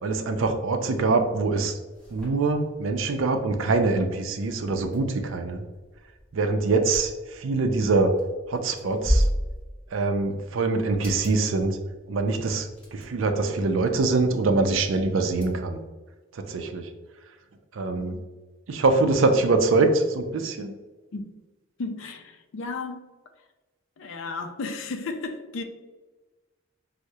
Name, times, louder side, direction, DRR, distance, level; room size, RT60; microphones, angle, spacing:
voice 1, 0.0-1.8 2.1-5.6 6.3-8.1 8.5-9.2 9.9-11.8 12.1-15.8 16.3-16.9 17.7-18.2 18.7-20.7, right 3 dB, 85° right, 6 dB, 0.4 m, -24 dB
sound 1, 1.9-15.4, equal, 5° left, 0.9 m, -35 dB
voice 2, 17.8-18.3 21.1-21.3 21.8-23.1 24.0-25.6, left 3 dB, 80° left, 6 dB, 0.4 m, -34 dB
4.6 x 2.1 x 2.7 m, 1.2 s
head